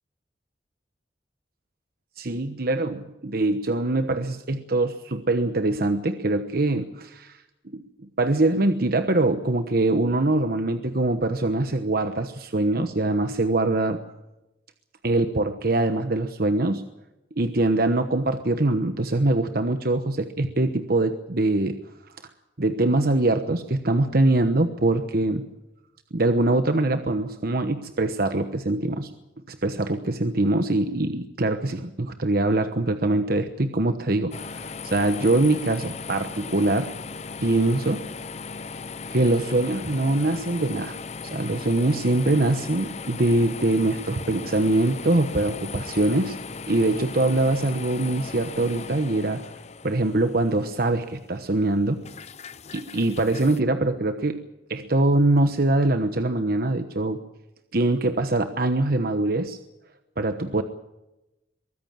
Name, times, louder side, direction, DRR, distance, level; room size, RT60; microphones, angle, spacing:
voice 1, 2.2-7.4 7.7-7.8 8.2-14.0 15.0-16.8 17.4-21.8 22.6-25.5 26.1-29.1 29.5-36.9 37.4-38.0 39.1-41.0 41.2-46.4 46.7-49.4 49.8-52.0 52.7-54.4 54.7-57.2 57.7-59.6 60.2-60.6, right 2 dB, 55° right, 8 dB, 1.1 m, -23 dB
sound 1, 34.3-53.6, left 4 dB, 40° left, 0.7 m, -38 dB
23.0 x 15.0 x 8.9 m, 0.96 s
head